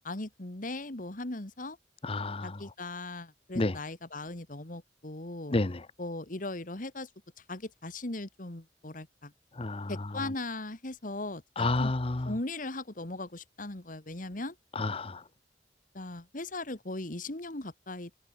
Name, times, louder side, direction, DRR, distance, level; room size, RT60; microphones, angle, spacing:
voice 1, 0.0-1.8 2.4-5.6 6.0-7.1 7.5-9.3 9.9-11.9 12.2-14.6 15.9-18.2, left 2 dB, 50° left, 2.0 m, -38 dB
voice 2, 2.0-2.5 3.6-3.8 5.5-5.8 9.6-9.9 11.6-12.3 14.8-15.2, left 2 dB, 35° left, 0.8 m, -30 dB
head